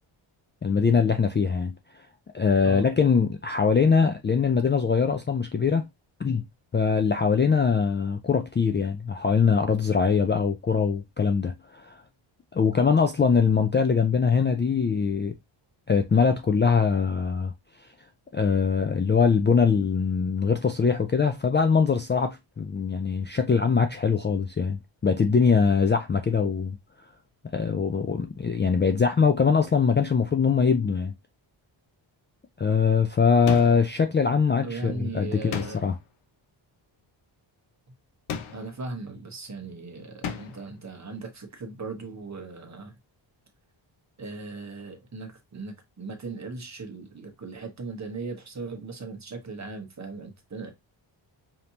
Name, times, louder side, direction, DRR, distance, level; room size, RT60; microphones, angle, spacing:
voice 1, 0.6-1.7 2.3-5.8 6.2-6.4 6.7-12.0 12.5-15.3 15.9-17.5 18.3-26.8 27.5-31.1 32.6-35.9, left 5 dB, 25° left, 0.4 m, -22 dB
sound 1, 33.5-34.0 35.5-36.1 38.3-38.8 40.2-40.7, left 7 dB, 90° left, 0.8 m, -35 dB
voice 2, 34.6-35.8 38.5-43.0 44.2-50.7, right 3 dB, 35° right, 1.2 m, -38 dB
5.1 x 2.8 x 2.8 m
wide cardioid pair, 130°, 48 cm